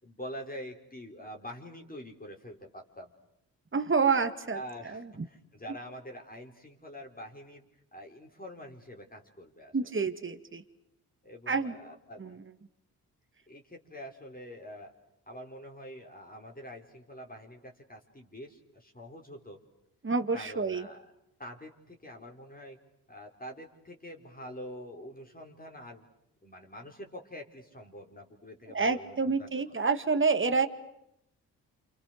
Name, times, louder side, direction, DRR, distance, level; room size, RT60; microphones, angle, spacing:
voice 1, 0.0-3.1 4.5-7.6 7.9-9.8 11.2-12.4 13.5-14.9 15.3-19.6 20.3-21.0 21.4-22.8 23.1-26.1 26.4-29.5, equal, 20° left, 1 dB, 4.7 m, -45 dB
voice 2, 3.7-4.6 4.8-5.0 9.7-10.6 11.5-11.8 12.2-12.4 20.0-20.9 28.7-30.7, right 4 dB, 25° right, 8 dB, 2.3 m, -28 dB
29.0 x 28.0 x 6.7 m, 0.81 s
hypercardioid pair, 45°, 44 cm